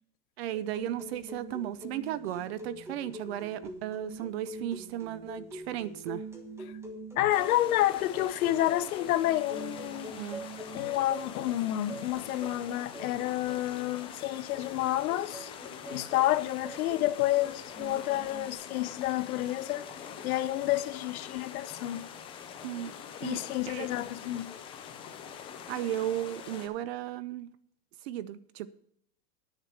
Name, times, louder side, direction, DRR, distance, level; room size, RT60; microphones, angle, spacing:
voice 1, 0.4-6.3 10.2-10.4 22.6-23.4 23.7-23.9 25.7-27.5 28.0-28.7, right 12 dB, 40° right, 0.5 m, -35 dB
sound 1, 0.5-18.5, right 1 dB, 5° right, 1.2 m, -45 dB
voice 2, 7.2-10.3 10.7-15.5 15.9-19.9 20.2-22.1 23.2-24.5, left 14 dB, 60° left, 0.8 m, -29 dB
sound 2, 7.3-26.7, left 8 dB, 10° left, 0.5 m, -45 dB
10.0 x 6.3 x 7.2 m
supercardioid pair, 150°, 49 cm